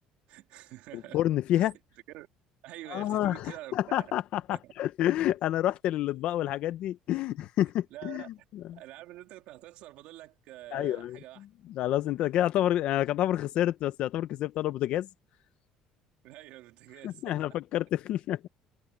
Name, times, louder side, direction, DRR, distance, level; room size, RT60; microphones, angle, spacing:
voice 1, 0.3-1.2 1.6-1.7 2.1-2.3 2.6-4.1 4.5-4.7 7.9-8.3 8.7-11.4 16.2-17.4, right 16 dB, 65° right, 3.2 m, -46 dB
voice 2, 0.9-1.7 2.9-8.8 10.7-15.1 17.0-18.5, left 13 dB, 50° left, 0.6 m, -29 dB
cardioid pair, 175°, 2 cm